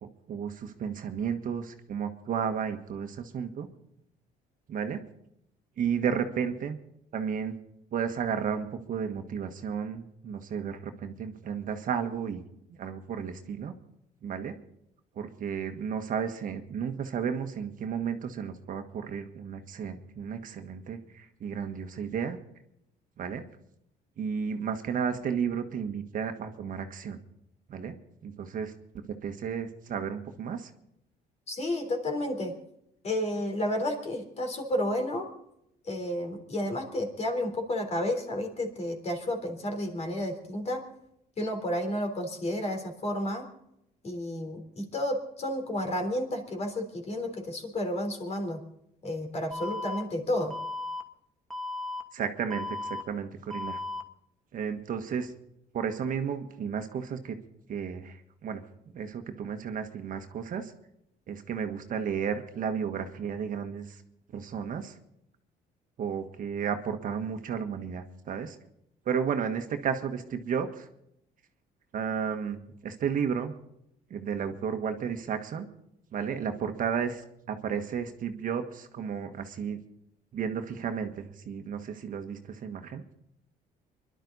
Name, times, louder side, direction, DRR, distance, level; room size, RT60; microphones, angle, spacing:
voice 1, 0.0-3.7 4.7-5.0 5.8-6.8 7.1-7.5 7.9-12.4 12.8-13.7 14.2-14.5 15.1-22.4 23.2-23.4 24.2-27.2 27.7-27.9 28.2-28.7 29.2-30.7 52.1-53.8 54.5-55.3 55.7-57.4 57.7-58.2 58.4-58.6 58.9-60.7 61.3-64.0 64.3-65.0 66.0-68.6 69.0-70.9 71.9-73.5 74.1-75.7 76.1-79.8 80.3-83.0, right 7 dB, 50° right, 7 dB, 1.5 m, -33 dB
voice 2, 31.5-32.5 33.0-35.3 35.8-40.8 41.4-43.5 44.0-48.6 49.0-50.5, left 1 dB, 40° left, 4 dB, 3.8 m, -31 dB
Alarm, 49.5-50.0 50.5-51.0 51.5-52.0 52.5-53.0 53.5-54.0, left 2 dB, ahead, 2.2 m, -35 dB
24.5 x 11.5 x 4.1 m, 0.77 s
cardioid pair, 110°, 17 cm